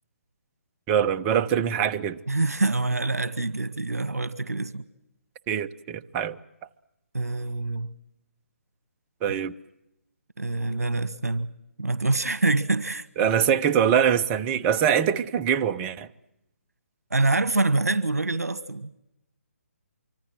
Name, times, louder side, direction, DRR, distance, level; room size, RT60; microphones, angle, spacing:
voice 1, 0.9-2.2 5.5-6.4 9.2-9.5 13.2-16.1, right 8 dB, 20° right, 0.8 m, -23 dB
voice 2, 2.3-4.8 7.1-7.9 10.4-11.5 11.8-13.0 17.1-18.9, right 2 dB, 80° right, 1.3 m, -25 dB
25.5 x 24.5 x 7.6 m
figure-of-eight pair, 145°, 8 cm